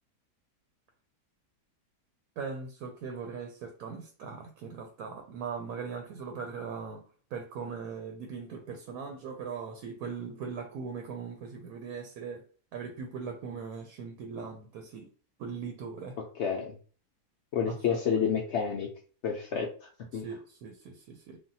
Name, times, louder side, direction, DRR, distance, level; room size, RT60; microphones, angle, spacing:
voice 1, 2.4-7.0 7.3-12.4 12.7-15.1 15.4-16.2 17.6-18.3 20.1-21.4, right 5 dB, 75° right, 1.0 m, -40 dB
voice 2, 16.4-16.7 17.5-18.9 19.2-20.3, left 7 dB, 80° left, 0.6 m, -30 dB
3.3 x 2.3 x 2.6 m
omnidirectional pair, 1.7 m